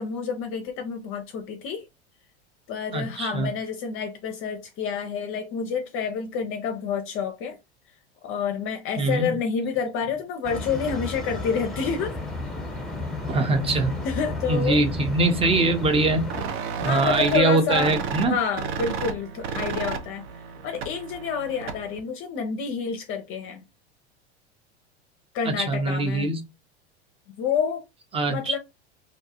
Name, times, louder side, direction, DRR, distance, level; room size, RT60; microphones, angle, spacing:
voice 1, 0.0-1.9 2.7-7.6 8.2-12.2 14.0-14.8 16.8-17.9 18.3-20.2 20.6-23.6 25.3-26.3 27.4-27.8 28.3-28.6, left 6 dB, 40° left, 0.5 m, -28 dB
voice 2, 2.9-3.5 9.0-9.4 13.3-13.9 14.5-16.3 16.8-18.4 25.5-26.4 28.1-28.6, right 3 dB, 15° right, 0.6 m, -23 dB
sound 1, 10.4-16.4, left 2 dB, ahead, 0.9 m, -32 dB
sound 2, 16.3-22.0, right 6 dB, 70° right, 0.7 m, -32 dB
2.5 x 2.3 x 2.7 m
hypercardioid pair, 90°, 34 cm